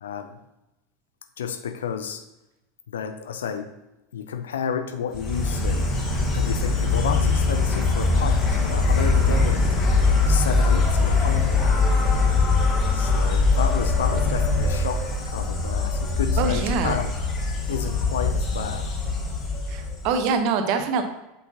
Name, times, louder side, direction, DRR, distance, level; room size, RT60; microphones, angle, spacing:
voice 1, 0.0-0.4 1.4-2.2 2.9-3.7 4.1-5.9 6.3-8.4 8.7-9.6 10.3-11.8 12.9-17.1 17.7-18.9, left 7 dB, 70° left, 8 dB, 0.6 m, -31 dB
Insect, 5.1-20.2, left 3 dB, 35° left, 1.5 m, -22 dB
voice 2, 16.4-17.0 19.7-21.0, right 5 dB, 50° right, 7 dB, 0.8 m, -24 dB
8.1 x 5.5 x 2.7 m, 0.95 s
figure-of-eight pair, 80°, 0 cm